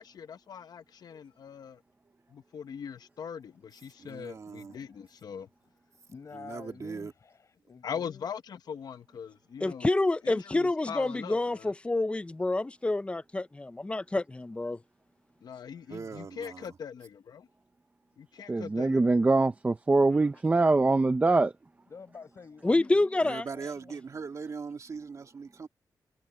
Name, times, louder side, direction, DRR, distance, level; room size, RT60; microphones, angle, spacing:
voice 1, 0.0-1.8 2.3-5.5 7.8-9.9 10.2-11.7 15.4-17.5 18.2-19.1, left 7 dB, 70° left, 0.9 m, -41 dB
voice 2, 4.0-4.8 6.3-7.1 15.9-16.8 23.2-25.7, right 5 dB, 50° right, 2.3 m, -40 dB
voice 3, 6.1-8.3 21.9-24.0, left 5 dB, 45° left, 6.7 m, -49 dB
voice 4, 9.6-14.8 22.6-23.4, left 2 dB, 15° left, 0.6 m, -28 dB
voice 5, 18.5-21.5, right 3 dB, 20° right, 0.7 m, -23 dB
wide cardioid pair, 130°, 7 cm